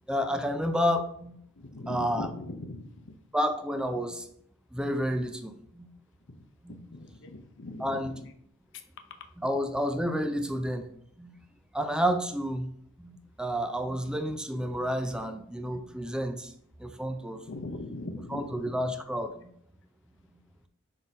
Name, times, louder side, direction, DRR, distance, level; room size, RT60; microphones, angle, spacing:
voice 1, 0.1-1.4 1.9-2.3 3.3-4.3 4.7-5.9 6.6-6.8 7.8-8.1 9.4-10.9 11.2-11.4 11.7-12.7 13.0-16.5 16.8-17.4 18.3-19.5, equal, 5° right, 7 dB, 0.4 m, -30 dB
voice 2, 1.6-3.1 6.3-6.4 6.7-8.3 8.7-9.3 17.4-18.9, left 2 dB, 60° left, 7 dB, 0.7 m, -41 dB
5.8 x 3.7 x 5.3 m, 0.68 s
head